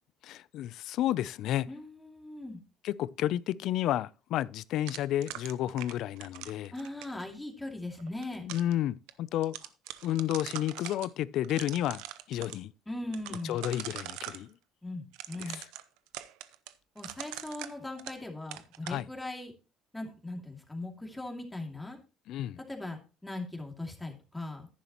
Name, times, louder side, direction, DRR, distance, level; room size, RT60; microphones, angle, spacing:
voice 1, 0.2-1.7 2.8-6.7 8.4-9.5 10.0-12.0 12.3-12.7 13.4-14.5 15.4-15.7 18.8-19.0 22.3-22.6, left 12 dB, 65° left, 0.4 m, -31 dB
voice 2, 1.7-2.6 6.7-8.5 12.9-13.6 14.8-15.6 16.9-19.5 19.9-22.0 22.7-24.7, left 2 dB, 10° left, 2.4 m, -39 dB
sound 1, 4.9-7.2 8.0-8.7 9.1-9.2 9.4-11.1 11.4-12.6 13.1-14.4 15.1-18.3 18.5-19.0, right 14 dB, 85° right, 0.7 m, -42 dB
10.5 x 10.0 x 3.0 m
cardioid pair, 105°, 0 cm